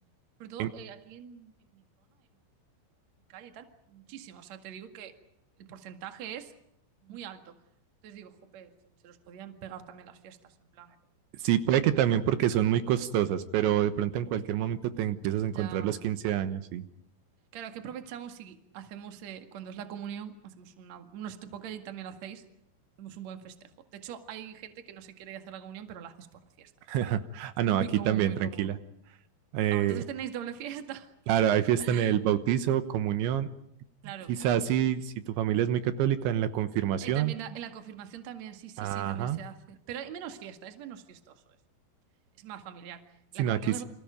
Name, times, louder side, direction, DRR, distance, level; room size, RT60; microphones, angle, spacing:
voice 1, 0.4-1.8 3.3-5.1 5.6-6.5 7.0-7.5 8.0-8.7 9.0-11.0 12.1-12.2 15.5-16.0 17.5-22.4 23.0-26.7 27.7-28.7 29.7-31.1 31.8-32.2 34.0-34.3 37.0-41.4 42.4-43.8, right 9 dB, 50° right, 7 dB, 2.5 m, -42 dB
voice 2, 11.4-16.8 26.9-28.8 29.5-30.0 31.3-33.5 34.4-37.3 38.8-39.4 43.4-43.8, right 11 dB, 75° right, 10 dB, 3.4 m, -27 dB
29.0 x 27.0 x 5.2 m, 0.75 s
omnidirectional pair, 5.4 m